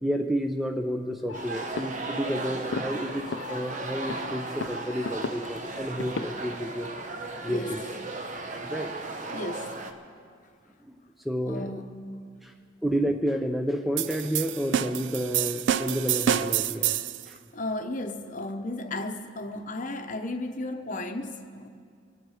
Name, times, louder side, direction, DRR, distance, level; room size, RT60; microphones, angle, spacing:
voice 1, 0.0-6.9 7.4-7.8 8.6-8.9 10.8-11.7 12.4-12.5 12.8-16.9 17.3-17.4, equal, ahead, 3 dB, 0.5 m, -30 dB
sound 1, 1.3-6.3, left 4 dB, 70° left, 0.5 m, -38 dB
sound 2, 1.3-9.9, right 3 dB, 40° right, 1.0 m, -36 dB
voice 2, 7.5-7.9 8.6-8.7 9.3-9.8 11.5-12.2 17.3-21.7, left 2 dB, 40° left, 6 dB, 0.8 m, -34 dB
sound 3, 14.0-17.2, right 10 dB, 65° right, 0.4 m, -27 dB
25.5 x 9.4 x 4.9 m, 2.2 s
head